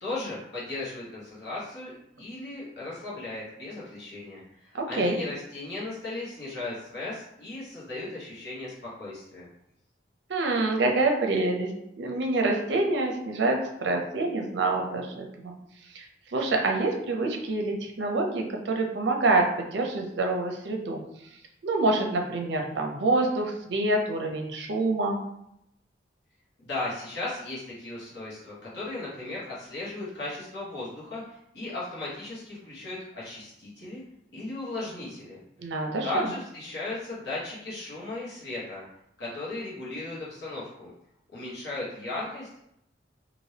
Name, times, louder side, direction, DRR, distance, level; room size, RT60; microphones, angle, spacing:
voice 1, 0.0-9.5 26.6-34.0 34.3-35.4 36.0-38.8 39.2-40.9 41.3-42.6, left 2 dB, 60° left, -7 dB, 1.1 m, -36 dB
voice 2, 4.7-5.2 10.3-11.7 12.0-15.5 15.9-21.0 21.6-25.2 35.6-36.3, right 2 dB, 65° right, 2 dB, 0.5 m, -26 dB
3.3 x 2.5 x 2.8 m, 0.79 s
head